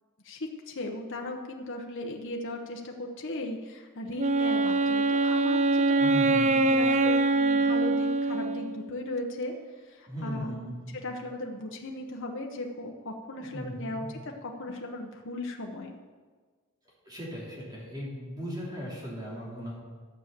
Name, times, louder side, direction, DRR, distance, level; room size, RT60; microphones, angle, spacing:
voice 1, 0.2-9.5 9.8-10.6 10.9-15.9, left 2 dB, 65° left, 1 dB, 1.1 m, -37 dB
Wind instrument woodwind instrument, 4.2-9.0, right 2 dB, 35° right, 0.4 m, -24 dB
voice 2, 6.0-6.7 10.1-11.0 13.5-14.1 17.0-19.7, equal, 20° right, -6 dB, 3.2 m, -37 dB
12.5 x 7.5 x 6.9 m, 1.5 s
head